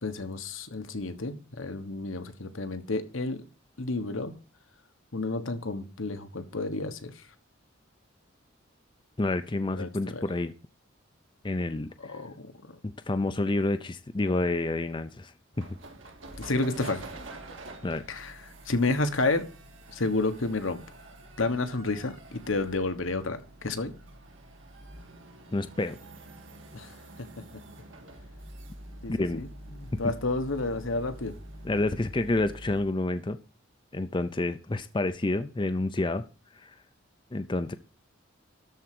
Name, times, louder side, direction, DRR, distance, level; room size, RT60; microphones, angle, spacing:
voice 1, 0.0-3.4 3.8-4.3 5.1-7.1 9.8-10.2 12.0-12.5 16.4-17.0 18.1-18.3 18.7-19.4 19.9-20.8 21.4-23.9 26.7-26.9 29.0-31.4, left 2 dB, 80° left, 1.4 m, -30 dB
voice 2, 9.2-10.5 11.4-12.2 12.8-15.3 15.6-15.7 17.8-18.0 25.5-26.0 29.1-29.4 30.0-30.1 31.6-33.4 33.9-36.2 36.6-36.7 37.3-37.7, left 2 dB, 25° left, 0.5 m, -29 dB
sound 1, 15.5-32.9, right 1 dB, 70° right, 2.0 m, -46 dB
13.0 x 4.5 x 7.6 m
head